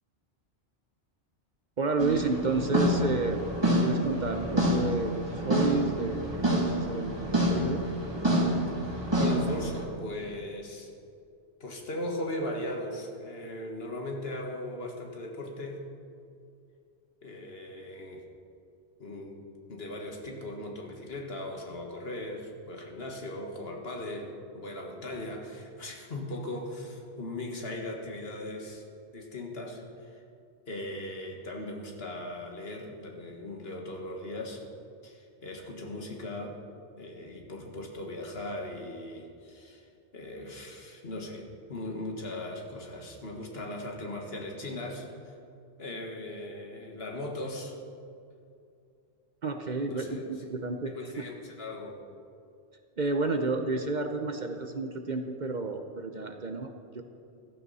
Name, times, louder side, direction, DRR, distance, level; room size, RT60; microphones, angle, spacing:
voice 1, 1.8-7.9 49.4-51.2 53.0-57.0, right 3 dB, 45° right, 6 dB, 0.8 m, -31 dB
sound 1, 2.0-9.8, right 1 dB, 20° right, 1.8 m, -28 dB
voice 2, 9.1-10.9 11.6-15.8 17.2-18.2 19.0-28.9 29.1-30.2 30.7-34.6 35.0-36.6 37.0-45.4 45.8-47.7 49.9-50.3 51.0-52.0, left 1 dB, 60° left, 1 dB, 1.8 m, -38 dB
15.0 x 13.5 x 4.2 m, 2.5 s
omnidirectional pair, 1.2 m